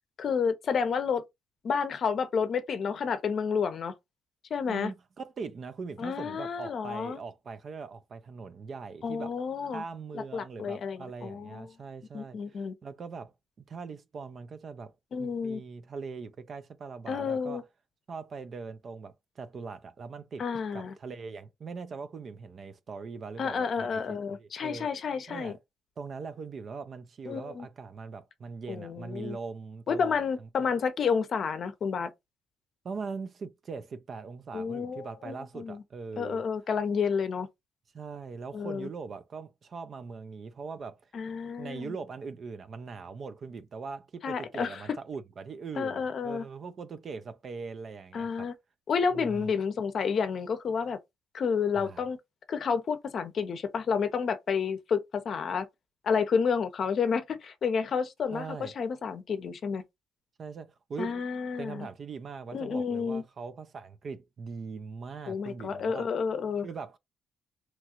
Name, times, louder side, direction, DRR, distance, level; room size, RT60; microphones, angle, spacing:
voice 1, 0.2-1.2 1.6-3.9 4.5-4.9 6.0-7.2 9.0-9.8 10.1-11.7 12.1-12.7 15.1-15.6 17.1-17.6 20.4-20.9 23.4-25.6 27.3-27.7 28.7-29.4 29.9-32.1 34.5-35.8 36.2-37.5 38.5-38.9 41.1-41.9 44.2-44.8 45.8-46.5 48.1-48.5 48.9-51.0 51.3-52.2 52.5-55.7 56.0-59.8 61.0-61.9 62.5-63.2 65.3-66.7, left 6 dB, 55° left, 0.6 m, -30 dB
voice 2, 4.7-9.3 9.7-13.3 13.7-14.9 15.2-17.6 18.1-20.4 20.7-24.9 25.3-25.6 26.0-30.7 32.8-36.4 37.9-41.1 41.6-48.5 49.1-49.5 51.7-52.0 58.3-58.7 60.4-61.2 61.6-66.1 66.6-67.0, right 5 dB, 50° right, 0.4 m, -41 dB
2.9 x 2.4 x 2.9 m
cardioid pair, 90°, 0 cm